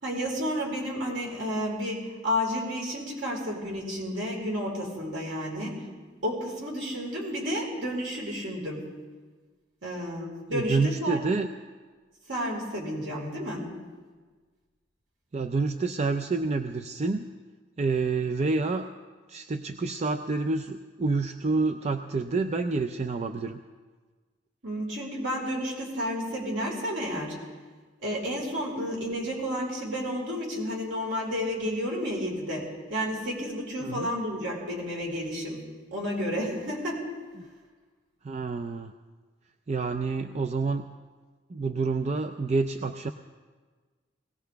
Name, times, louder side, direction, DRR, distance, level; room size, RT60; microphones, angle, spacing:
voice 1, 0.0-5.8 6.2-8.8 9.8-11.2 12.3-13.7 24.6-27.4 28.0-35.6 35.9-37.1, equal, 70° right, -3 dB, 4.5 m, -31 dB
voice 2, 10.5-11.5 15.3-17.3 17.8-18.9 19.3-23.6 33.8-34.1 38.2-38.9 39.7-40.9 41.5-43.1, right 3 dB, 35° right, 7 dB, 0.5 m, -28 dB
20.5 x 17.5 x 3.4 m, 1.4 s
head